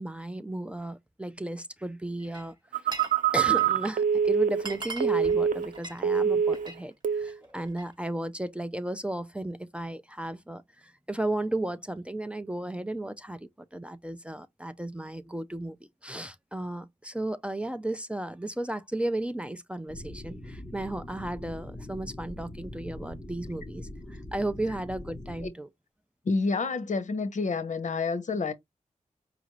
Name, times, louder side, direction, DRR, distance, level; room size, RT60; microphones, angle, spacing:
voice 1, 0.0-2.5 3.3-15.8 16.0-25.7, right 1 dB, 10° right, 0.4 m, -34 dB
Glass, 2.2-3.2 3.4-3.9 4.2-4.3 4.5-6.8 7.2-7.9, right 3 dB, 35° right, 1.7 m, -41 dB
Telephone, 2.7-5.8 6.0-6.7 7.0-7.4, right 7 dB, 85° right, 0.5 m, -25 dB
sound 1, 19.9-25.5, left 1 dB, 15° left, 1.2 m, -42 dB
voice 2, 26.2-28.5, left 4 dB, 70° left, 0.8 m, -28 dB
4.9 x 2.5 x 3.0 m
wide cardioid pair, 115°, 13 cm